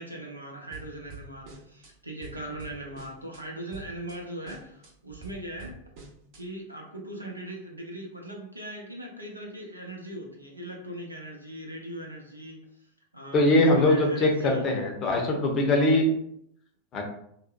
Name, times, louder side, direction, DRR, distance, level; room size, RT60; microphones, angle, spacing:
voice 1, 0.0-5.8 6.3-12.6 13.1-14.6, right 1 dB, 85° right, 0 dB, 0.5 m, -39 dB
sound 1, 0.7-1.9 2.2-3.4 3.7-4.2 4.5-6.4, right 4 dB, 45° right, 0.6 m, -46 dB
voice 2, 13.3-16.1 16.9-17.0, left 1 dB, 30° left, 1 dB, 0.6 m, -22 dB
2.7 x 2.0 x 2.4 m, 0.72 s
figure-of-eight pair, 90°, 0 cm